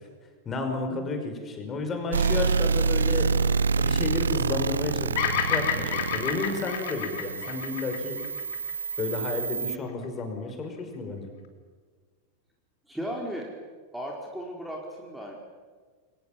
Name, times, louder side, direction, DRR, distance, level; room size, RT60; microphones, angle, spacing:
voice 1, 0.5-3.3 3.8-8.2 9.0-11.3, left 3 dB, 20° left, 5 dB, 5.7 m, -32 dB
sound 1, 2.1-9.8, right 5 dB, 70° right, 0.7 m, -27 dB
Bird vocalization bird call bird song, 5.1-9.4, left 8 dB, 50° left, 3.3 m, -30 dB
voice 2, 12.9-13.5 13.9-15.3, equal, 5° right, 0 dB, 4.4 m, -35 dB
29.5 x 23.5 x 7.5 m, 1.5 s
figure-of-eight pair, 90°, 0 cm